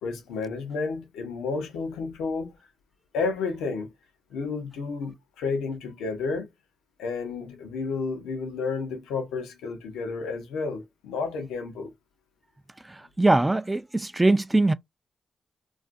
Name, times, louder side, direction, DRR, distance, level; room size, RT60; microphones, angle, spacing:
voice 1, 0.0-2.6 3.1-3.9 4.3-6.5 7.0-11.9, left 4 dB, 90° left, 0.7 m, -31 dB
voice 2, 12.8-14.7, right 2 dB, 20° right, 0.3 m, -22 dB
2.4 x 2.4 x 2.4 m
supercardioid pair, 45°, 0 cm